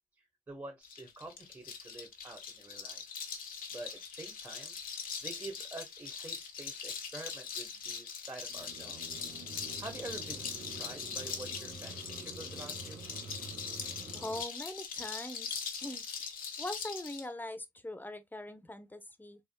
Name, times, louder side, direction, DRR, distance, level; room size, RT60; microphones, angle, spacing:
voice 1, 0.5-3.0 3.7-4.8 5.2-9.2 9.8-13.0, right 2 dB, 25° right, 1.3 m, -47 dB
sound 1, 0.8-17.2, left 6 dB, 80° left, 1.0 m, -41 dB
sound 2, 8.5-14.4, right 4 dB, 80° right, 1.3 m, -48 dB
voice 2, 14.1-16.1 16.6-19.4, left 1 dB, 15° left, 0.9 m, -42 dB
3.6 x 3.5 x 2.3 m
supercardioid pair, 55°, 14 cm